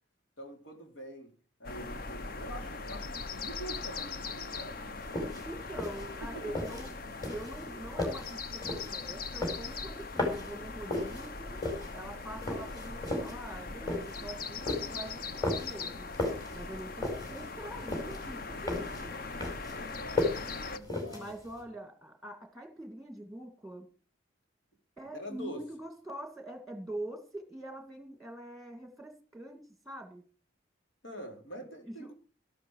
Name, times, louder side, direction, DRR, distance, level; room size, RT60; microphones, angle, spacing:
voice 1, 0.4-1.3 1.6-5.0 5.3-5.4 6.3-6.6 15.0-15.1 19.4-21.3 25.1-25.6 31.0-32.1, right 1 dB, 85° left, 3.6 m, -45 dB
sound 1, 1.6-20.8, left 4 dB, 50° left, 0.8 m, -40 dB
sound 2, 5.0-21.6, left 2 dB, 20° left, 4.8 m, -36 dB
voice 2, 5.4-6.9 7.3-11.6 11.9-16.1 16.5-19.2 21.1-23.9 25.0-29.6 29.8-30.2 31.8-32.1, right 1 dB, ahead, 2.3 m, -44 dB
13.0 x 12.0 x 4.8 m
head